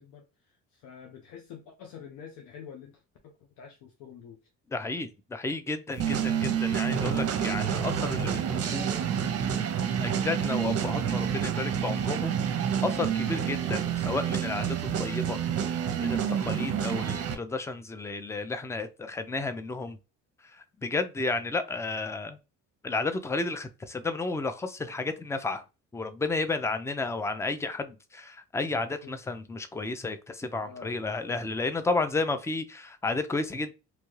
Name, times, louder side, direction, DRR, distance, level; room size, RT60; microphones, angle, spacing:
voice 1, 0.0-4.4 10.0-10.2 12.8-13.7 29.0-29.1 30.5-31.5, left 7 dB, 80° left, 0.7 m, -48 dB
voice 2, 4.7-9.0 10.0-12.4 12.8-15.4 16.0-20.0 20.5-22.4 22.8-25.6 25.9-33.7, left 3 dB, 10° left, 0.4 m, -32 dB
sound 1, 6.0-17.3, right 8 dB, 45° right, 0.7 m, -28 dB
3.0 x 2.3 x 3.1 m
supercardioid pair, 80°, 33 cm